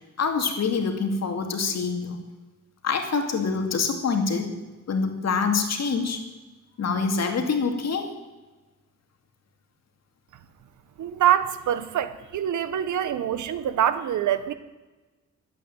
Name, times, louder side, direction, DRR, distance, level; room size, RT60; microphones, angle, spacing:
voice 1, 0.2-2.2 2.8-4.5 4.9-6.2 6.8-8.1, left 5 dB, 60° left, 4 dB, 2.5 m, -25 dB
voice 2, 11.0-14.5, right 10 dB, 80° right, 13 dB, 1.1 m, -25 dB
12.0 x 9.0 x 8.8 m, 1.2 s
cardioid pair, 90°, 29 cm